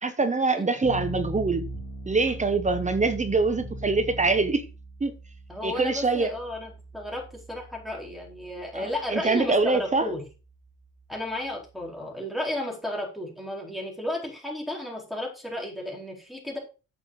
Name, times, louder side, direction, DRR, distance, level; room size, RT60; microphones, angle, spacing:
voice 1, 0.0-1.7 2.1-4.6 5.0-5.1 5.6-6.3 8.7-10.1, right 3 dB, 25° right, 1.1 m, -24 dB
sound 1, 0.8-12.0, right 1 dB, 35° left, 3.0 m, -40 dB
voice 2, 5.5-10.2 11.1-16.6, left 1 dB, ahead, 4.3 m, -33 dB
9.2 x 6.0 x 4.9 m
cardioid pair, 90°, 30 cm